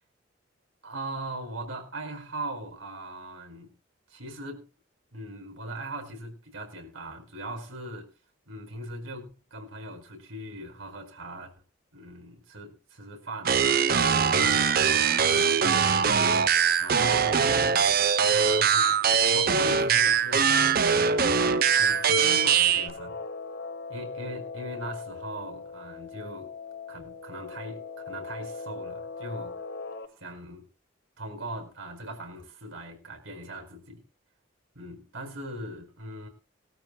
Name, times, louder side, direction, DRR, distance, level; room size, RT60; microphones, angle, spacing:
voice 1, 0.8-3.7 4.1-4.7 5.1-8.1 8.5-11.5 11.9-13.6 14.1-16.1 16.8-17.9 18.3-23.2 23.9-26.5 26.9-29.6 30.2-30.7 31.2-34.0 34.7-36.3, right 1 dB, 85° right, 4 dB, 4.9 m, -40 dB
sound 1, 13.4-22.9, right 6 dB, 45° right, 0.7 m, -22 dB
Guitar, 20.6-30.1, left 4 dB, 75° left, 3.9 m, -40 dB
21.5 x 13.5 x 2.3 m, 0.33 s
head